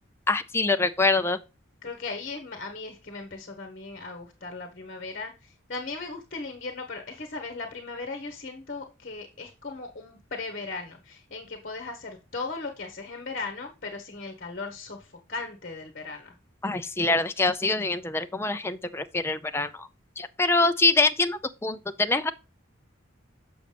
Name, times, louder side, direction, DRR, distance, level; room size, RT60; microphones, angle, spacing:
voice 1, 0.3-1.4 16.6-19.9 20.2-22.3, left 3 dB, 10° left, 0.5 m, -25 dB
voice 2, 1.8-16.3, left 3 dB, 45° left, 1.2 m, -37 dB
7.2 x 6.4 x 3.3 m
head